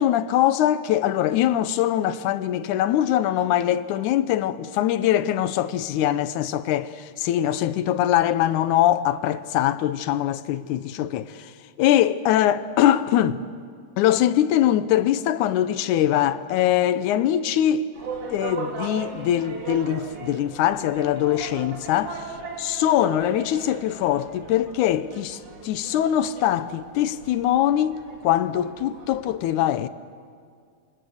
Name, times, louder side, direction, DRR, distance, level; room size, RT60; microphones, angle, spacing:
voice 1, 0.0-6.9 7.2-11.5 11.8-13.4 14.0-17.9 18.3-29.9, left 11 dB, 90° left, 2.3 m, -22 dB
sound 1, 17.9-29.4, right 4 dB, 50° right, 3.5 m, -38 dB
27.5 x 25.5 x 6.5 m
omnidirectional pair, 3.4 m